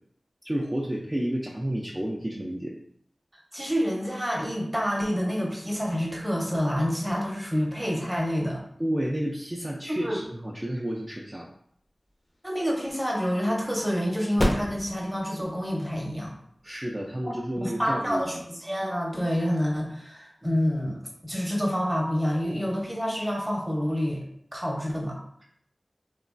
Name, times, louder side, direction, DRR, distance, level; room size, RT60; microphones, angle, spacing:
voice 1, 0.4-2.7 8.8-11.5 16.6-18.2 22.5-22.6, right 1 dB, 25° right, -3 dB, 0.3 m, -31 dB
voice 2, 3.5-8.6 9.9-10.2 12.4-16.3 17.2-24.2 24.5-25.2, equal, 10° right, -2 dB, 0.7 m, -28 dB
sound 1, 11.8-19.1, equal, 35° left, 0.4 m, -35 dB
3.0 x 2.3 x 2.4 m, 0.69 s
wide cardioid pair, 55°, 0 cm